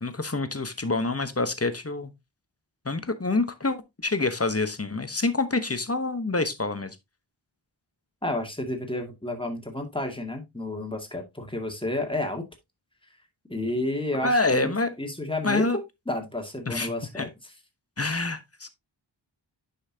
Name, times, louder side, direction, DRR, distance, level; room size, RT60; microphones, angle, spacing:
voice 1, 0.0-2.1 2.8-7.0 14.2-14.9 15.4-15.8 16.7-17.3 18.0-18.7, left 3 dB, 30° left, 1.1 m, -27 dB
voice 2, 8.2-12.4 13.5-14.7 15.0-15.7 16.1-17.3, left 1 dB, 10° left, 2.2 m, -31 dB
10.0 x 5.6 x 2.8 m
wide cardioid pair, 65°, 47 cm